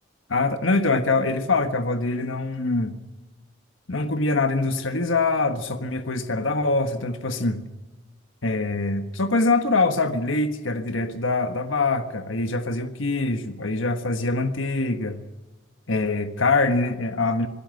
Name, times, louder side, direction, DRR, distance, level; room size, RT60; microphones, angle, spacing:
voice 1, 0.3-3.0 3.9-7.6 8.4-15.2 15.9-17.5, left 3 dB, 85° left, 1.5 m, -24 dB
25.5 x 17.5 x 7.8 m
head